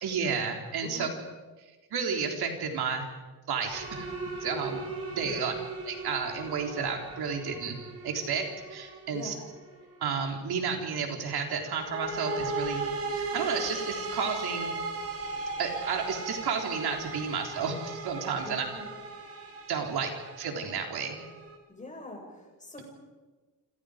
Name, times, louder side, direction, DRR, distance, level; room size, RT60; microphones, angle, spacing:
voice 1, 0.0-1.1 1.9-3.1 3.5-4.1 4.4-5.5 5.9-7.8 8.0-9.3 10.0-14.7 15.6-18.7 19.7-20.1 20.4-21.2, right 6 dB, 75° right, 3 dB, 3.8 m, -32 dB
sound 1, 3.7-10.2 11.6-21.6, right 3 dB, 35° right, 4.2 m, -37 dB
voice 2, 5.2-5.5 9.1-9.4 18.4-18.9 21.7-22.8, left 2 dB, 20° left, 1 dB, 6.7 m, -43 dB
28.5 x 27.0 x 5.1 m, 1.3 s
cardioid pair, 145°, 38 cm